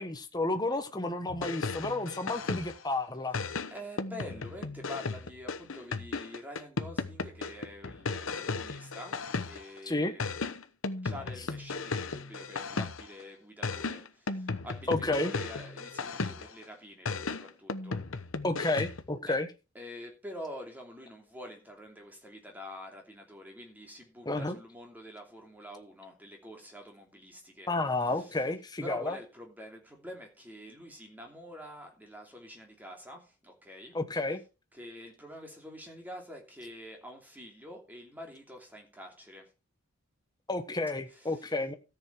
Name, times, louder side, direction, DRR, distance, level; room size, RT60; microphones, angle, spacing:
voice 1, 0.0-3.4 9.9-10.1 14.9-15.3 18.4-19.5 24.2-24.6 27.7-29.2 33.9-34.4 40.5-41.7, left 2 dB, 20° left, 1.2 m, -31 dB
sound 1, 1.3-2.9 3.3-9.8 10.2-13.2 13.6-16.6 17.1-19.1, left 4 dB, 65° left, 1.0 m, -35 dB
voice 2, 3.7-10.4 11.0-18.0 19.3-19.4 19.7-27.7 28.1-28.4 28.8-34.0 34.7-39.5 41.1-41.5, left 1 dB, 10° right, 2.9 m, -46 dB
13.5 x 7.1 x 4.6 m
head